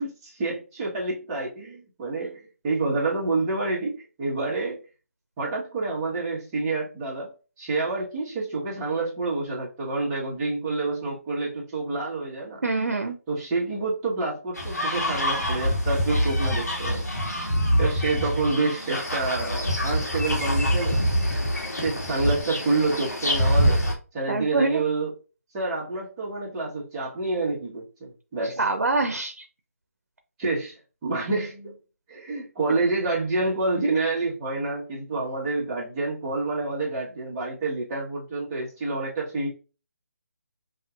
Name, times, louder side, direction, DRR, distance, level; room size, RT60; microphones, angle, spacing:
voice 1, 0.0-4.8 5.4-12.6 13.3-17.0 17.8-21.0 21.8-23.8 24.1-25.1 25.5-28.6 30.4-31.8 32.1-39.5, right 3 dB, 20° right, -5 dB, 1.3 m, -28 dB
voice 2, 12.6-13.1 24.3-24.8 28.4-29.4, right 3 dB, 85° right, 4 dB, 0.6 m, -25 dB
sound 1, 14.5-23.9, equal, 90° left, 1.9 m, -25 dB
5.5 x 2.7 x 2.4 m, 0.33 s
figure-of-eight pair, 155°, 9 cm